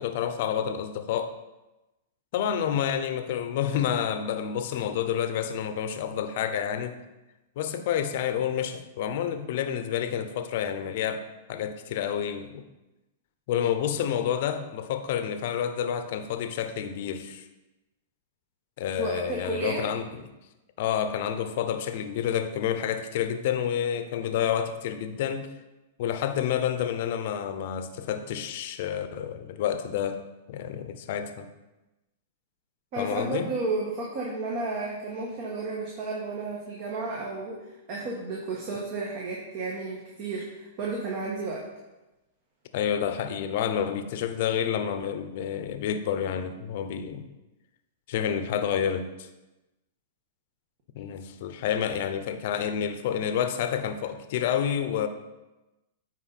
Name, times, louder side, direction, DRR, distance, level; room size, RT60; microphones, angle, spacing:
voice 1, 0.0-1.3 2.3-7.0 7.6-12.6 13.5-17.4 18.8-20.2 20.8-25.5 26.0-30.2 30.5-31.5 33.0-33.5 42.7-47.3 48.1-49.3 51.0-55.1, left 9 dB, 60° left, 9 dB, 0.7 m, -29 dB
voice 2, 19.0-19.8 32.9-37.6 37.9-41.6, right 3 dB, 50° right, -3 dB, 1.6 m, -32 dB
9.1 x 4.4 x 4.2 m, 1.0 s
hypercardioid pair, 120°, 0 cm